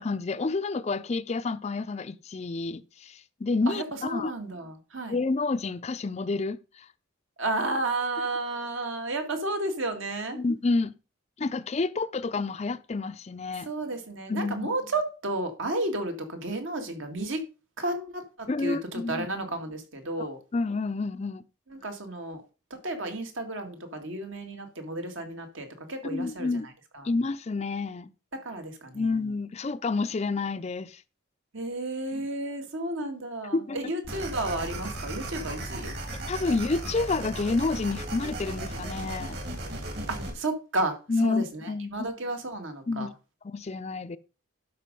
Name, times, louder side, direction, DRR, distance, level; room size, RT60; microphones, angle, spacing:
voice 1, 0.0-4.3 5.1-6.9 10.3-10.9 11.4-13.7 14.3-14.7 18.5-19.3 20.2-20.3 20.5-21.4 26.1-26.7 27.0-28.1 28.9-31.0 33.5-33.8 36.3-39.4 41.1-41.9 42.9-43.1 43.4-44.2, left 3 dB, 30° left, 0.4 m, -29 dB
voice 2, 3.7-5.2 7.4-10.4 13.6-17.4 17.8-20.4 21.7-22.4 22.7-26.6 26.9-27.1 28.3-29.1 31.5-35.9 40.1-43.1, right 2 dB, 70° right, 2.1 m, -32 dB
sound 1, 34.0-40.3, right 1 dB, 55° right, 2.7 m, -36 dB
12.0 x 5.1 x 5.3 m
head